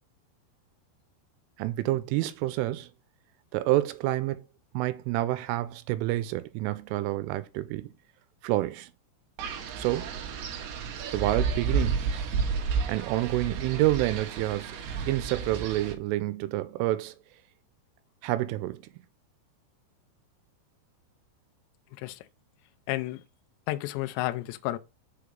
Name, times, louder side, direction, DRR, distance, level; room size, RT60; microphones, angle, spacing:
voice 1, 1.6-2.9 3.5-4.4 4.7-7.9 8.4-8.9 9.8-10.2 11.1-12.0 12.9-14.8 15.1-17.2 18.2-18.8, right 16 dB, 85° right, 3.2 m, -28 dB
Wind, 9.4-15.9, right 5 dB, 70° right, 2.8 m, -31 dB
voice 2, 22.9-23.2 23.7-24.8, left 16 dB, 90° left, 2.5 m, -31 dB
7.0 x 4.9 x 5.1 m
omnidirectional pair, 5.7 m